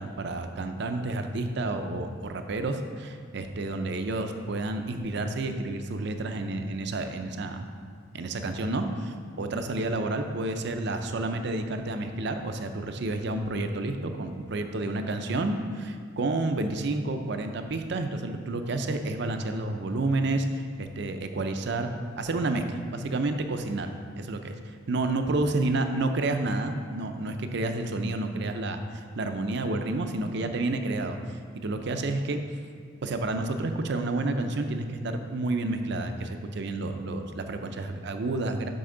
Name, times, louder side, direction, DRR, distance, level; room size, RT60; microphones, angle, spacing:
voice 1, 0.0-7.6 8.1-21.9 22.2-31.2 31.6-32.4 33.0-38.7, right 2 dB, 60° right, 7 dB, 0.5 m, -30 dB
7.8 x 6.2 x 3.8 m, 2.1 s
head